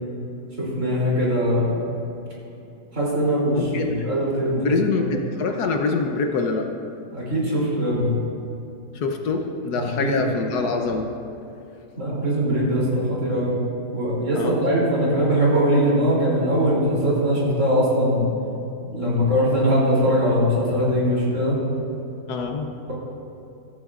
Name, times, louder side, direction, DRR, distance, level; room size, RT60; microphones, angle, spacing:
voice 1, 0.6-1.8 2.9-3.6 3.8-4.7 7.1-8.2 9.7-10.2 12.0-13.6 13.9-18.3 18.9-21.6, equal, 45° right, -6 dB, 3.6 m, -21 dB
voice 2, 3.5-6.7 8.9-11.1 14.3-14.6 22.3-22.7, left 4 dB, 70° left, 4 dB, 1.3 m, -25 dB
15.0 x 13.5 x 2.5 m, 2.8 s
omnidirectional pair, 1.8 m